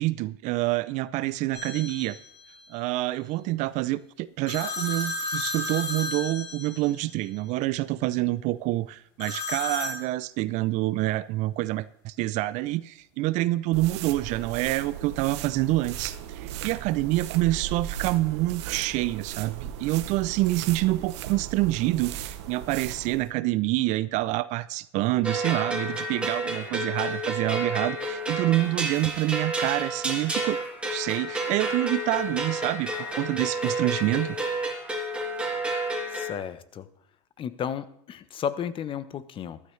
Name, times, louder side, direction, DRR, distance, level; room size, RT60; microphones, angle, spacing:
voice 1, 0.0-2.2 2.7-30.6 30.9-34.4, right 17 dB, 55° right, 0.6 m, -27 dB
sound 1, 1.5-2.3 4.5-7.1 9.2-10.0, left 2 dB, 65° left, 4.8 m, -33 dB
sound 2, 13.7-23.3, right 10 dB, 75° right, 0.9 m, -37 dB
sound 3, 25.2-36.3, right 1 dB, 5° right, 3.1 m, -30 dB
voice 2, 36.1-36.9 37.4-39.6, left 8 dB, 35° left, 0.9 m, -33 dB
14.5 x 12.0 x 3.3 m
hypercardioid pair, 95°, 15 cm